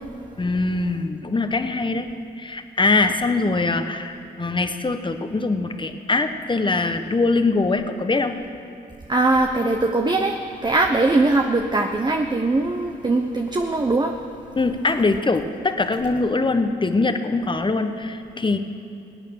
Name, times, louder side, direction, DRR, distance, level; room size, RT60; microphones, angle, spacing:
voice 1, 0.4-2.1 2.4-8.4 14.6-18.6, left 3 dB, 25° left, 8 dB, 1.1 m, -22 dB
voice 2, 9.1-14.2, right 2 dB, 25° right, 3 dB, 1.0 m, -21 dB
18.0 x 8.9 x 6.6 m, 2.8 s
supercardioid pair, 55°, 19 cm